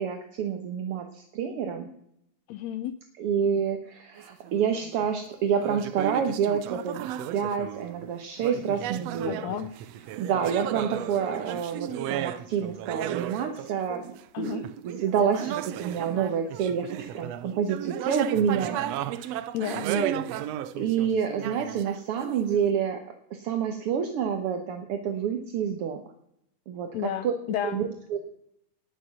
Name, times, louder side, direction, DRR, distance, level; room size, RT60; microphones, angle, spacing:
voice 1, 0.0-1.9 3.2-9.4 10.2-19.5 19.8-20.1 20.8-23.0 23.3-26.0 26.7-27.3 27.6-28.2, right 7 dB, 60° right, 5 dB, 1.6 m, -28 dB
voice 2, 2.5-2.9 9.2-9.7 14.3-14.6 19.5-19.9 26.9-27.8, left 11 dB, 80° left, 11 dB, 1.6 m, -32 dB
sound 1, 4.2-5.1 5.6-8.1 8.4-22.7, right 11 dB, 90° right, 1.4 m, -35 dB
19.0 x 6.8 x 6.0 m, 0.75 s
omnidirectional pair, 3.7 m